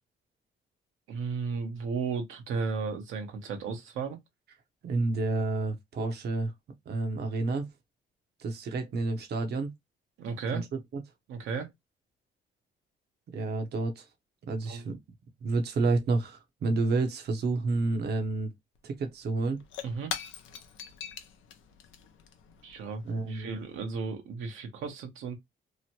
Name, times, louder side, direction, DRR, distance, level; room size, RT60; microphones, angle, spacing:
voice 1, 1.1-4.2 10.2-10.7 11.3-11.7 14.7-14.8 19.8-20.1 22.6-25.4, right 5 dB, 85° right, 0.9 m, -34 dB
voice 2, 4.8-6.5 6.9-7.7 8.4-9.7 10.5-10.6 10.9-11.0 13.3-14.1 14.5-15.0 15.4-18.5 18.8-19.6 23.0-23.5, right 3 dB, 55° right, 0.7 m, -29 dB
Shatter / Crushing, 18.7-18.8 19.1-23.9, left 8 dB, 80° left, 0.6 m, -43 dB
2.9 x 2.1 x 2.8 m
cardioid pair, 90°, 20 cm